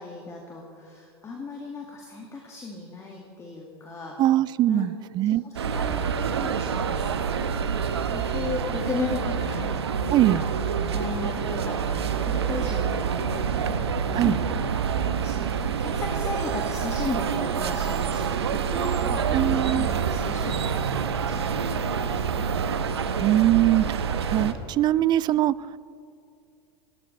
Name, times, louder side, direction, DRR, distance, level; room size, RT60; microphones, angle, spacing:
voice 1, 0.0-4.2 4.7-5.0 5.3-6.1 6.4-7.6 8.1-9.7 10.3-10.4 10.9-13.6 14.0-14.4 15.2-22.5, left 3 dB, 20° left, 0 dB, 2.2 m, -36 dB
voice 2, 4.2-5.4 10.1-10.4 14.1-14.4 19.3-19.9 23.2-25.6, right 14 dB, 30° right, 20 dB, 0.4 m, -22 dB
sound 1, 5.6-24.5, right 7 dB, 75° right, 1.0 m, -27 dB
sound 2, 8.9-23.9, left 6 dB, 85° left, 2.1 m, -43 dB
20.0 x 17.5 x 3.4 m, 2.5 s
hypercardioid pair, 90°, 14 cm